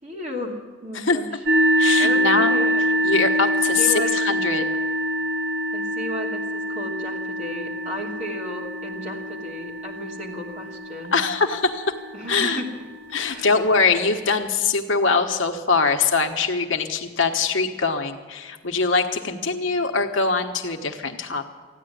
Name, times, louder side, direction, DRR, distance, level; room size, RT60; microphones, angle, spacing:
voice 1, 0.0-1.3 2.0-2.8 3.8-4.1 5.7-11.2 12.1-12.7 13.3-13.5 19.3-19.8, left 1 dB, 35° right, -2 dB, 2.7 m, -34 dB
sound 1, 1.4-13.0, equal, 55° right, 1.6 m, -25 dB
voice 2, 1.8-2.6 3.0-4.7 11.1-11.9 12.3-12.6 13.1-21.4, left 4 dB, 65° left, 4 dB, 1.2 m, -22 dB
15.0 x 10.0 x 9.4 m, 1.5 s
head